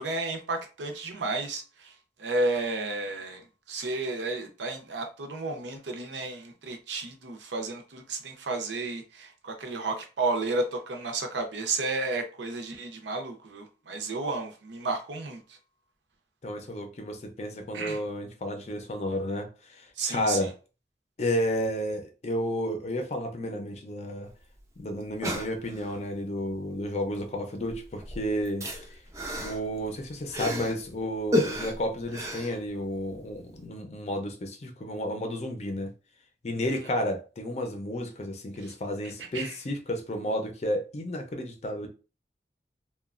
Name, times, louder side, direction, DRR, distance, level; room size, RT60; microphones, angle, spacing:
voice 1, 0.0-1.9 2.2-15.6 17.7-18.0 20.0-20.5 36.7-36.8 38.6-38.7 39.3-39.6, right 3 dB, 90° right, 0.6 m, -32 dB
voice 2, 16.4-20.5 21.2-24.3 24.8-29.0 29.4-35.9 36.4-41.9, equal, 40° left, 0.5 m, -32 dB
sound 1, 24.3-24.4 24.6-24.7 25.0-26.0 27.1-27.4 27.6-30.9 31.3-33.2 33.5-33.6, left 1 dB, 15° right, 0.5 m, -32 dB
2.9 x 2.2 x 2.4 m
head